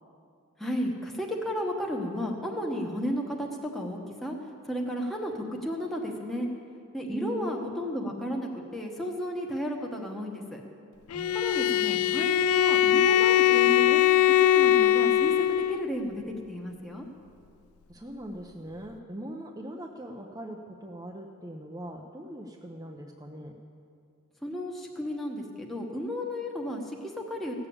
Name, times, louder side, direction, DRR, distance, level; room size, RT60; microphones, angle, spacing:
voice 1, 0.6-3.5 3.7-4.3 4.7-6.5 6.9-10.6 11.3-14.0 14.4-17.0 24.4-27.7, equal, ahead, -1 dB, 1.1 m, -33 dB
voice 2, 7.1-7.5 11.1-11.4 17.9-23.5, right 1 dB, 15° right, 1 dB, 0.6 m, -40 dB
Bowed string instrument, 11.1-15.9, left 11 dB, 75° left, 0.3 m, -21 dB
16.0 x 7.0 x 8.5 m, 2.5 s
head